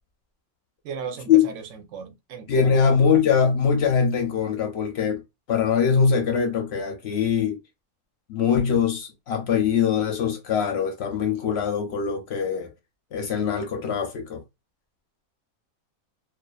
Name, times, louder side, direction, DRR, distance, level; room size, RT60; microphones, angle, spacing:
voice 1, 0.8-1.6 1.9-2.8, right 6 dB, 65° right, 0.8 m, -36 dB
voice 2, 2.5-5.2 5.5-7.6 8.3-12.7 13.1-14.4, left 7 dB, 65° left, 0.7 m, -22 dB
2.4 x 2.3 x 2.2 m
omnidirectional pair, 1.5 m